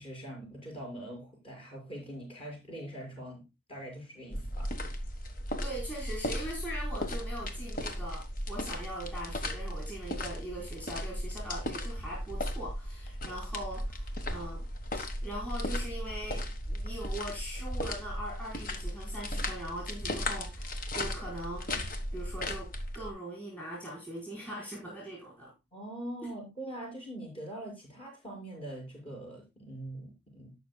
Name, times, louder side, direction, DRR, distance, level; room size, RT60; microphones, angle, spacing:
voice 1, 0.0-4.7 25.7-30.5, right 1 dB, 30° left, -1 dB, 6.3 m, -43 dB
sound 1, 4.3-23.1, left 1 dB, 50° left, 1.5 m, -36 dB
voice 2, 5.6-14.7 14.9-22.7 22.9-25.5 26.2-26.3, right 1 dB, 10° left, -5 dB, 5.0 m, -41 dB
18.5 x 6.2 x 2.3 m, 0.24 s
head